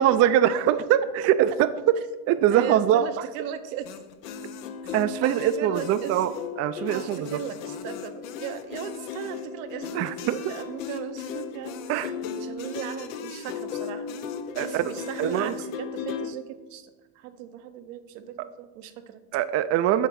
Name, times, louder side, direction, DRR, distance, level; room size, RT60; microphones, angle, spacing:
voice 1, 0.0-1.7 2.3-3.1 4.9-6.3 6.6-7.3 9.9-10.3 11.9-12.1 14.5-14.8 15.2-15.5 19.3-20.1, right 11 dB, 40° right, 12 dB, 0.4 m, -22 dB
voice 2, 2.5-3.9 4.8-4.9 5.2-6.2 6.9-11.7 12.4-14.1 14.6-19.2, right 9 dB, 80° right, 9 dB, 0.8 m, -37 dB
sound 1, 3.8-16.3, left 6 dB, 90° left, 0.8 m, -36 dB
8.1 x 3.6 x 6.1 m, 1.2 s
supercardioid pair, 105°, 38 cm